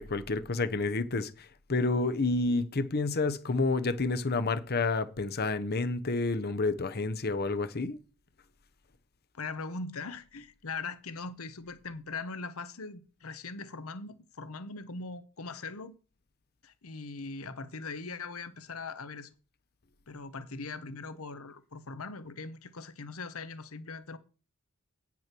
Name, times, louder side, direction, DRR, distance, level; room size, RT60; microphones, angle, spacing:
voice 1, 0.0-8.0, left 3 dB, 45° left, 0.9 m, -29 dB
voice 2, 9.3-16.0 16.6-19.3 20.1-24.2, left 4 dB, 70° left, 1.0 m, -40 dB
9.3 x 5.9 x 6.0 m
head